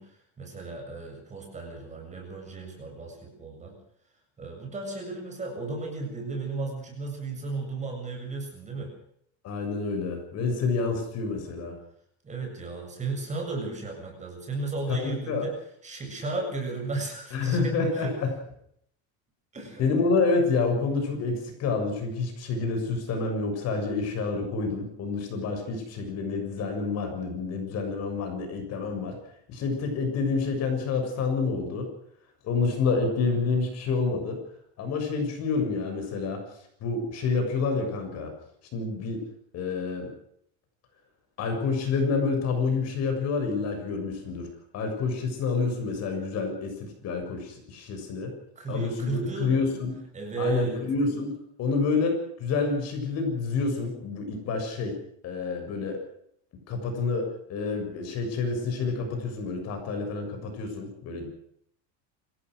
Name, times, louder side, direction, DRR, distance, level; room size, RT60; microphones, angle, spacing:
voice 1, 0.0-3.8 4.4-8.9 12.2-15.6 15.8-18.1 19.5-19.8 48.6-49.6 50.1-50.8, right 3 dB, 20° right, 2 dB, 7.6 m, -34 dB
voice 2, 9.4-11.8 14.9-15.5 17.3-18.3 19.8-29.2 29.5-31.9 32.4-34.4 34.8-36.4 36.8-38.3 38.7-39.2 39.5-40.1 41.4-44.5 44.7-48.3 48.7-50.0 50.4-55.0 55.2-56.0 56.7-61.3, left 4 dB, 45° left, 4 dB, 7.0 m, -28 dB
27.0 x 16.5 x 6.4 m, 0.70 s
cardioid pair, 150°, 36 cm